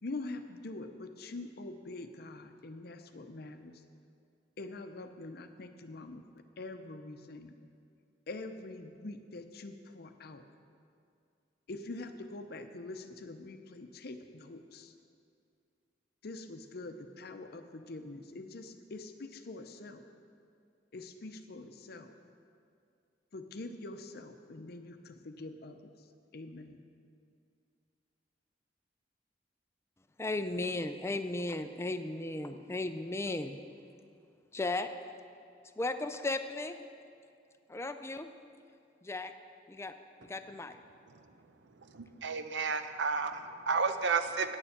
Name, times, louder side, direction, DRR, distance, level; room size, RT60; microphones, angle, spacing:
voice 1, 0.0-3.8 4.6-6.2 6.6-7.5 8.3-10.5 11.7-14.9 16.2-20.0 20.9-22.1 23.3-25.9 26.3-26.8, left 2 dB, 60° left, 7 dB, 0.7 m, -44 dB
voice 2, 30.2-33.6 34.5-34.9 35.8-36.8 37.7-38.3 39.0-39.3 39.7-39.9 40.2-40.8, left 2 dB, 15° left, 9 dB, 0.4 m, -35 dB
voice 3, 41.9-44.6, right 5 dB, 85° right, 9 dB, 0.6 m, -32 dB
9.8 x 6.9 x 7.2 m, 2.4 s
head